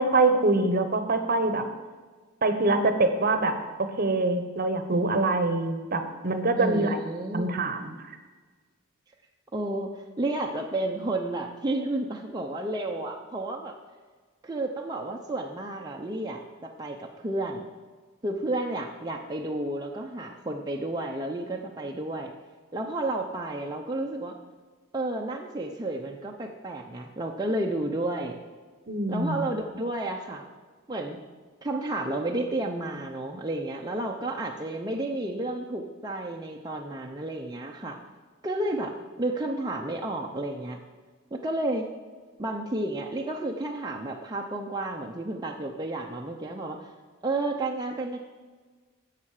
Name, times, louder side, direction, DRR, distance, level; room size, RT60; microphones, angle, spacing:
voice 1, 0.0-1.6 2.4-7.0 7.3-8.2 28.9-29.4, right 2 dB, 45° right, 8 dB, 1.0 m, -25 dB
voice 2, 6.6-7.6 9.5-13.7 14.4-17.7 18.2-22.3 22.7-24.3 24.9-28.4 29.1-30.4 30.9-31.2 31.6-38.0 38.4-40.8 41.3-41.9 42.4-46.9 47.2-48.2, right 2 dB, 20° right, 0 dB, 0.7 m, -31 dB
11.5 x 7.5 x 4.9 m, 1.4 s
head